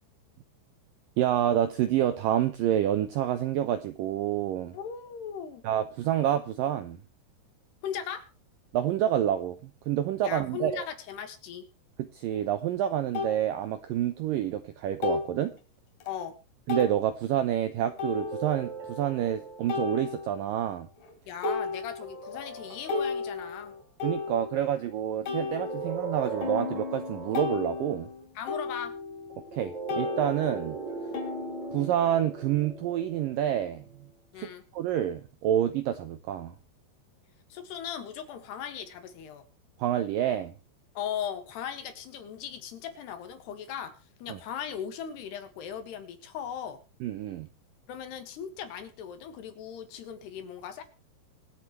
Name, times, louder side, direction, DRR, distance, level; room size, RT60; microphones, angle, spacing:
voice 1, 1.2-4.8 5.6-7.0 8.7-10.9 12.0-15.5 16.7-20.9 24.0-28.1 29.5-30.8 31.7-33.8 34.4-36.6 39.8-40.5 44.3-44.4 47.0-47.5, right 11 dB, 80° right, 10 dB, 2.0 m, -28 dB
voice 2, 4.7-5.6 7.8-8.3 10.2-11.7 16.0-16.4 21.3-23.7 28.4-29.0 34.3-34.6 37.5-39.5 41.0-46.8 47.9-50.8, left 8 dB, 75° left, 8 dB, 3.7 m, -38 dB
sound 1, 12.3-12.4 13.1-13.4 15.0-15.4 16.0-16.1 16.7-17.0 18.0-18.6 19.7-20.5 21.0-21.1 21.4-22.3 22.6-24.8 25.3-29.6 29.9-32.2, left 4 dB, 50° left, 3.7 m, -34 dB
sound 2, 17.9-20.3 22.0-23.9 25.2-28.0 29.3-33.8, right 3 dB, 45° right, 4.6 m, -40 dB
25.5 x 8.6 x 3.2 m, 0.31 s
omnidirectional pair, 4.9 m